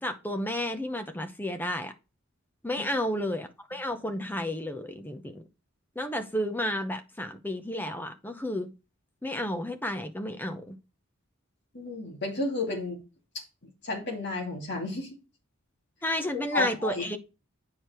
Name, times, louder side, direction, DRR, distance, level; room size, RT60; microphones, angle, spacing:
voice 1, 0.0-1.9 2.6-5.4 6.0-8.7 9.2-10.8 16.0-17.2, left 1 dB, 10° left, 0.8 m, -32 dB
voice 2, 11.7-13.0 13.8-15.1 16.3-17.1, left 2 dB, 50° left, 2.7 m, -32 dB
8.7 x 4.8 x 4.4 m
head